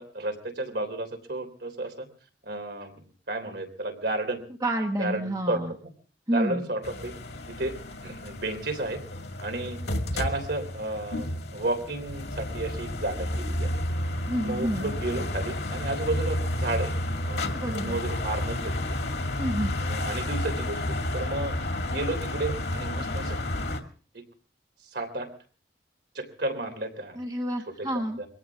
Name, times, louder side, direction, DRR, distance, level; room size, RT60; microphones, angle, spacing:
voice 1, 0.0-2.1 2.4-4.4 5.0-5.8 6.3-7.1 7.5-7.8 8.0-9.0 9.4-9.8 10.1-11.3 11.5-13.8 14.4-16.9 17.2-18.7 19.8-21.6 21.8-23.4 24.9-25.3 26.2-27.2 27.8-28.3, right 2 dB, 65° right, 6 dB, 3.5 m, -32 dB
voice 2, 4.6-5.7 6.3-6.7 14.3-14.9 17.5-18.0 19.4-19.7 27.1-28.2, right 1 dB, 20° right, 3 dB, 1.3 m, -29 dB
sound 1, 6.8-23.8, left 1 dB, 65° left, 2.2 m, -31 dB
23.0 x 17.0 x 3.6 m, 0.43 s
head